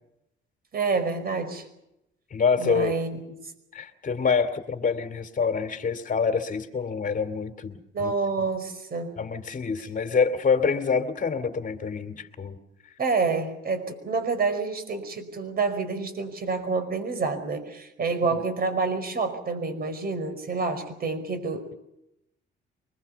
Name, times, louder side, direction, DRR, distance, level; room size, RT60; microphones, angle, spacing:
voice 1, 0.7-1.7 2.6-3.2 7.9-9.2 13.0-21.7, right 4 dB, 50° right, 10 dB, 5.1 m, -28 dB
voice 2, 2.3-2.9 3.7-8.1 9.2-12.6, left 5 dB, 40° left, 9 dB, 2.7 m, -26 dB
24.5 x 21.5 x 7.0 m, 0.84 s
cardioid pair, 90°, 20 cm